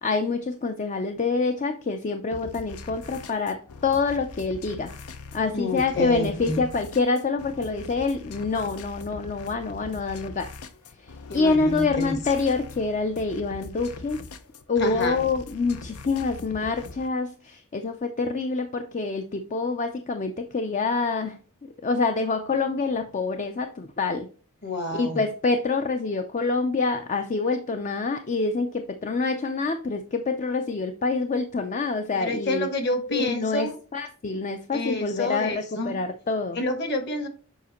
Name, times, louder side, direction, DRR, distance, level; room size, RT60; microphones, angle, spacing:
voice 1, 0.0-5.0 5.3-10.5 11.0-14.2 14.7-24.3 24.9-32.7 33.1-36.6, left 3 dB, 35° left, 0.4 m, -26 dB
sound 1, 2.3-17.1, left 3 dB, 85° left, 0.7 m, -42 dB
voice 2, 5.5-6.6 11.3-12.2 14.8-15.2 24.6-25.2 32.1-33.8 34.7-36.0 36.5-37.3, left 1 dB, 50° left, 1.3 m, -28 dB
7.2 x 5.0 x 2.9 m
head